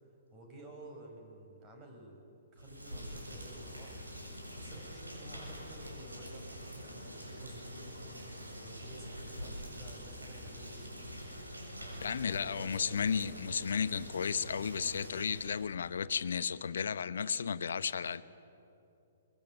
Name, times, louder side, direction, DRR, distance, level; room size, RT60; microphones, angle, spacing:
voice 1, 0.3-2.2 2.5-4.0 4.5-8.0 8.6-11.1 11.8-13.0, right 1 dB, 25° right, 2 dB, 6.3 m, -52 dB
Rain, 2.5-15.7, equal, 90° right, 7.5 m, -45 dB
voice 2, 12.0-18.2, left 6 dB, 65° left, 15 dB, 0.9 m, -34 dB
24.0 x 22.5 x 9.1 m, 2.8 s
figure-of-eight pair, 120°, 0 cm